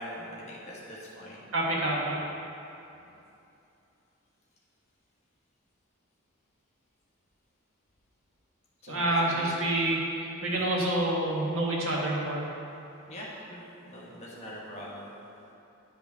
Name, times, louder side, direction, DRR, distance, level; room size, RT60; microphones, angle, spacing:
voice 1, 0.0-1.4 8.8-9.5 10.6-10.7 13.1-15.1, equal, 35° left, -5 dB, 1.4 m, -42 dB
voice 2, 1.5-2.2 8.9-12.5, right 1 dB, 75° right, -4 dB, 1.4 m, -28 dB
10.0 x 5.1 x 3.6 m, 2.8 s
head